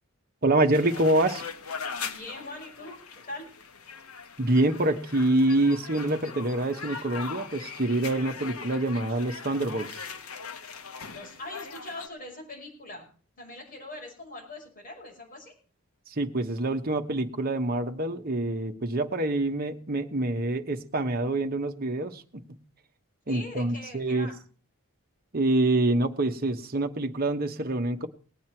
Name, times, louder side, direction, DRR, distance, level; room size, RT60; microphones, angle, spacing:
voice 1, 0.4-1.4 4.4-9.9 16.2-22.6 23.3-24.3 25.3-28.1, right 2 dB, 45° right, 5 dB, 1.1 m, -26 dB
sound 1, 0.7-12.1, left 5 dB, 75° left, 1.2 m, -40 dB
voice 2, 2.0-3.5 11.1-13.1 13.4-15.5 23.3-24.4, left 2 dB, 40° left, 0 dB, 5.9 m, -42 dB
19.0 x 9.4 x 4.5 m, 0.40 s
head